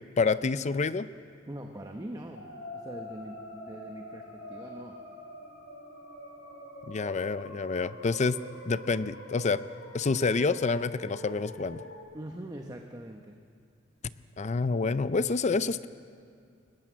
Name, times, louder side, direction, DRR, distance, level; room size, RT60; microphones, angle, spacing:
voice 1, 0.2-1.1 6.9-8.4 8.7-9.6 9.9-11.8 14.4-15.9, left 4 dB, 35° left, 14 dB, 0.5 m, -28 dB
voice 2, 1.5-5.0 12.1-13.4, right 1 dB, 20° right, 3 dB, 0.9 m, -42 dB
sound 1, 2.3-12.0, left 1 dB, 70° left, 4.3 m, -45 dB
20.5 x 18.5 x 7.5 m, 2.3 s
head